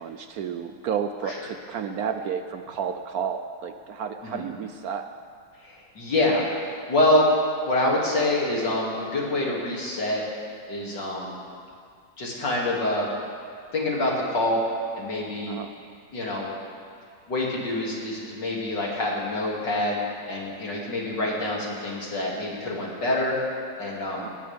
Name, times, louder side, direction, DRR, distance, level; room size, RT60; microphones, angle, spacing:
voice 1, 0.0-5.1 15.5-15.7 21.4-21.5 24.2-24.3, right 7 dB, 65° right, 8 dB, 1.0 m, -31 dB
voice 2, 5.6-7.3 7.6-10.2 10.7-11.4 12.2-13.1 13.7-14.6 14.9-15.6 16.1-16.5 17.3-20.0 20.3-23.4 23.8-24.3, left 1 dB, 70° left, -3 dB, 3.3 m, -26 dB
19.0 x 17.5 x 3.6 m, 2.2 s
omnidirectional pair, 1.9 m